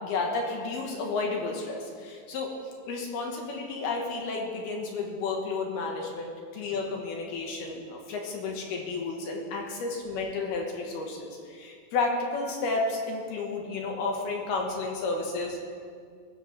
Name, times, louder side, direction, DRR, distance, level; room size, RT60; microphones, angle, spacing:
voice 1, 0.0-15.6, left 3 dB, 65° left, 0 dB, 3.1 m, -32 dB
22.0 x 13.5 x 3.4 m, 2.1 s
omnidirectional pair, 5.3 m